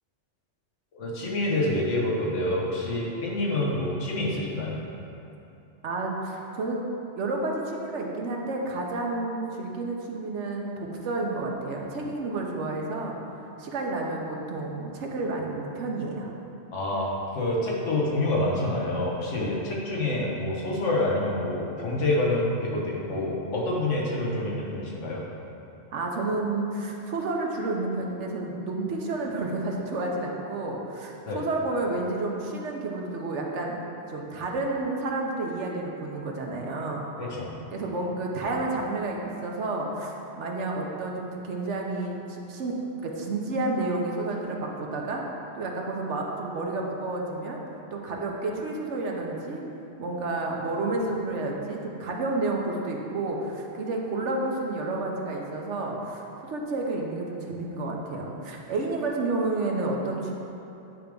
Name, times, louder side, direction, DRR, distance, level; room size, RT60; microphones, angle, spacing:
voice 1, 0.9-4.8 16.7-17.1 17.3-25.2 31.3-31.4 37.2-37.5, left 1 dB, 90° left, -4 dB, 1.6 m, -27 dB
voice 2, 5.8-6.8 7.2-16.3 25.9-33.8 34.1-37.0 37.7-42.8 43.0-45.2 45.5-47.6 47.9-49.6 50.0-60.3, right 2 dB, 75° right, 0 dB, 1.2 m, -30 dB
9.6 x 3.4 x 5.2 m, 2.9 s
omnidirectional pair, 1.2 m